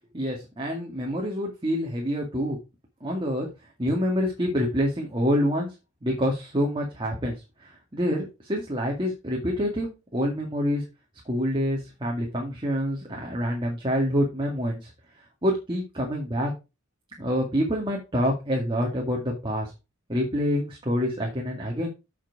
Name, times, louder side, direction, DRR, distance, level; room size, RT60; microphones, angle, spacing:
voice 1, 0.1-2.6 3.0-3.5 3.8-5.7 6.0-10.9 11.3-14.9 15.4-16.5 17.2-19.7 20.1-21.9, equal, 25° right, -1 dB, 2.1 m, -27 dB
8.1 x 6.0 x 4.7 m, 0.27 s
head